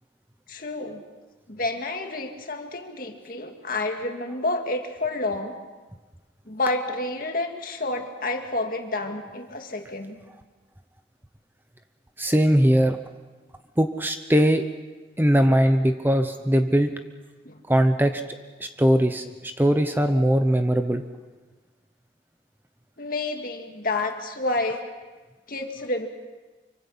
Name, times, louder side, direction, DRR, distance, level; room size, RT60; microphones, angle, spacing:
voice 1, 0.5-1.0 1.5-5.6 6.5-10.2 17.5-17.6 23.0-24.8 25.5-26.1, left 2 dB, 50° left, 4 dB, 2.1 m, -29 dB
voice 2, 12.2-13.0 13.8-14.6 15.2-16.9 17.7-18.2 18.6-21.0, equal, 10° right, 7 dB, 0.8 m, -20 dB
25.5 x 24.5 x 5.7 m, 1.3 s
head